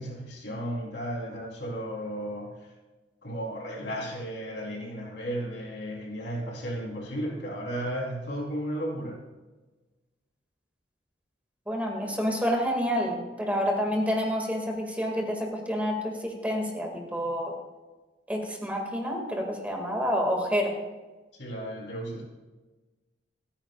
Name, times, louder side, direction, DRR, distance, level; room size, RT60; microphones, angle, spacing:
voice 1, 0.0-2.7 3.2-9.2 21.3-22.2, equal, 70° left, -2 dB, 3.5 m, -34 dB
voice 2, 11.7-17.5 18.3-20.8, equal, 10° right, 0 dB, 2.1 m, -28 dB
28.0 x 9.8 x 2.4 m, 1.2 s
head